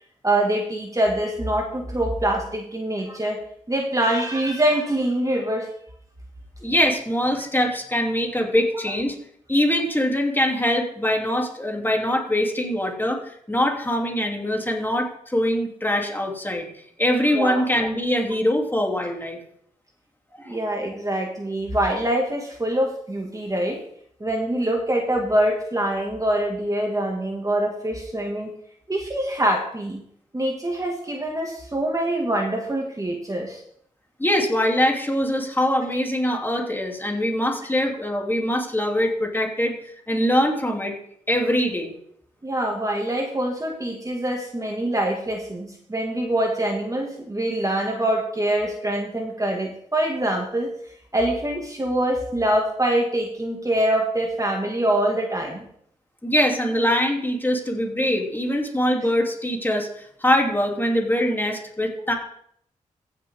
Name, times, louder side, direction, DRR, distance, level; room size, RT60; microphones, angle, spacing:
voice 1, 0.2-3.4 3.7-5.7 17.3-17.7 20.5-23.8 24.2-28.5 28.9-30.0 30.3-33.6 42.4-50.7 51.1-55.6, right 1 dB, 25° right, 1 dB, 2.1 m, -24 dB
voice 2, 6.6-9.2 9.5-16.7 17.0-19.4 20.4-20.6 34.2-40.9 41.3-41.9 56.2-62.1, equal, 15° left, 0 dB, 3.0 m, -23 dB
15.5 x 6.7 x 3.7 m, 0.67 s
supercardioid pair, 45°, 14 cm